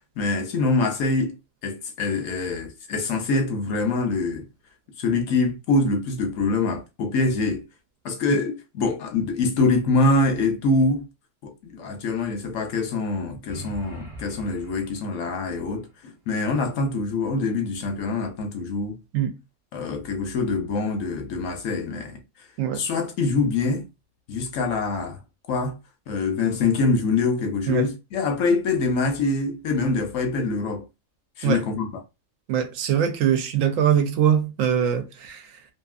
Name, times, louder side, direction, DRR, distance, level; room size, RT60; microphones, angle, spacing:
voice 1, 0.2-1.3 1.6-4.4 5.0-7.6 8.0-11.1 11.4-19.0 19.7-22.2 22.7-23.9 24.3-25.2 25.5-25.8 26.1-30.9 31.4-31.9, left 3 dB, 70° left, 0.9 m, -24 dB
sound 1, 13.5-15.5, right 2 dB, 35° right, 0.5 m, -41 dB
voice 2, 32.5-35.5, right 9 dB, 70° right, 0.9 m, -22 dB
2.8 x 2.5 x 2.4 m
omnidirectional pair, 1.5 m